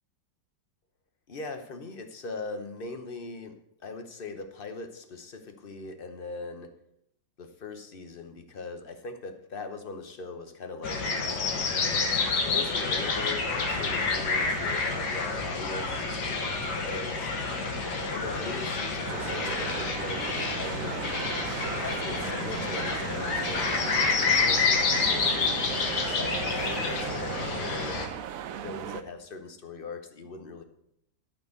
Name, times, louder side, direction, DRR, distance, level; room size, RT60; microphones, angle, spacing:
voice 1, 1.3-6.7 7.4-11.7 12.4-17.3 18.1-21.1 21.7-25.5 26.0-28.0 28.5-30.6, left 3 dB, 45° left, 7 dB, 0.8 m, -40 dB
sound 1, 10.8-28.1, left 4 dB, 60° left, 1.7 m, -28 dB
sound 2, 19.1-29.0, right 9 dB, 70° right, 0.8 m, -37 dB
12.0 x 4.4 x 8.1 m, 0.75 s
omnidirectional pair, 2.1 m